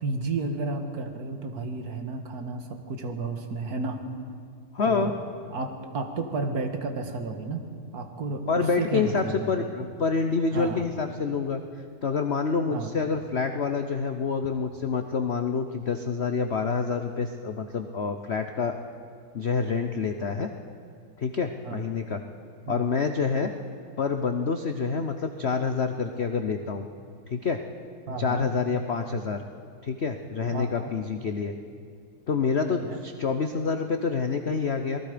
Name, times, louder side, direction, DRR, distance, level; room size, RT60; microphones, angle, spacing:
voice 1, 0.0-4.0 4.8-5.1 5.5-7.6 7.9-9.7 10.5-10.9 12.7-12.9 21.6-21.8 22.7-22.8 28.1-28.5 30.5-30.9 32.6-33.0, right 3 dB, 50° right, 5 dB, 1.9 m, -32 dB
voice 2, 4.7-5.1 8.5-11.6 12.0-18.7 19.3-20.5 21.2-22.2 22.7-23.5 24.0-26.9 27.3-27.6 28.2-29.4 29.8-31.5 32.3-35.0, left 5 dB, 85° left, 6 dB, 0.5 m, -27 dB
28.0 x 19.0 x 5.1 m, 2.2 s
omnidirectional pair, 2.3 m